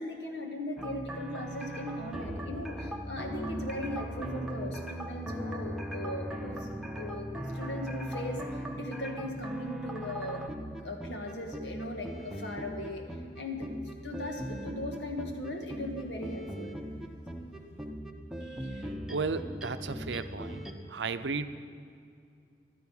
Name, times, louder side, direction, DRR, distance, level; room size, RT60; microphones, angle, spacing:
voice 1, 0.0-7.3 7.5-10.4 10.8-13.0 13.4-13.7 14.0-16.7, left 1 dB, 90° left, 2 dB, 1.9 m, -38 dB
sound 1, 0.8-20.7, right 1 dB, 5° right, 0.8 m, -39 dB
voice 2, 19.1-20.6 20.9-21.5, right 4 dB, 90° right, 10 dB, 0.7 m, -34 dB
14.5 x 12.0 x 5.6 m, 2.4 s
head